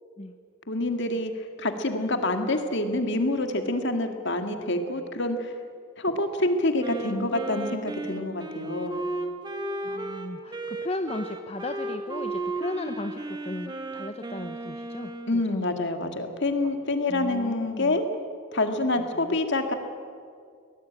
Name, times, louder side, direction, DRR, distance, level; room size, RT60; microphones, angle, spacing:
voice 1, 0.7-5.5 6.0-9.0 15.3-18.0 18.5-19.7, left 2 dB, 55° left, 6 dB, 2.1 m, -27 dB
Wind instrument woodwind instrument, 6.8-15.5, right 2 dB, 20° right, 1.7 m, -34 dB
voice 2, 9.8-16.3 16.6-16.7 17.1-18.0 19.0-19.4, left 2 dB, 30° left, 7 dB, 0.8 m, -36 dB
23.0 x 19.0 x 8.9 m, 2.2 s
head